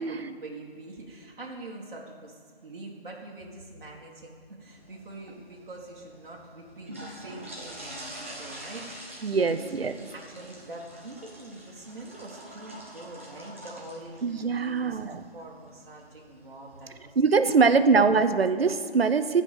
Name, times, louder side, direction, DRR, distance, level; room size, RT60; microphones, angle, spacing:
voice 1, 0.0-17.1 17.6-17.8, right 2 dB, 55° right, -3 dB, 1.6 m, -44 dB
sound 1, 4.7-17.0, right 1 dB, 15° right, 0.6 m, -46 dB
voice 2, 9.2-10.0 14.2-15.2 17.2-19.4, right 4 dB, 70° right, 11 dB, 0.8 m, -23 dB
15.0 x 5.2 x 6.7 m, 2.2 s
figure-of-eight pair, 160°, 31 cm